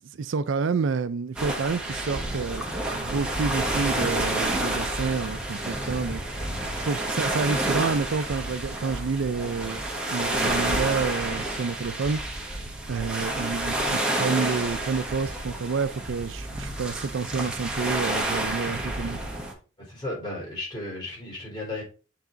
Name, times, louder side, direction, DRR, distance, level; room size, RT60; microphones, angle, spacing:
voice 1, 0.1-6.2 6.8-9.8 10.1-12.2 12.9-19.2, right 5 dB, 70° right, 0.4 m, -29 dB
sound 1, 1.4-19.5, right 1 dB, 5° right, 1.2 m, -29 dB
voice 2, 19.8-21.8, left 2 dB, 20° left, 3.7 m, -34 dB
7.2 x 4.8 x 3.8 m
head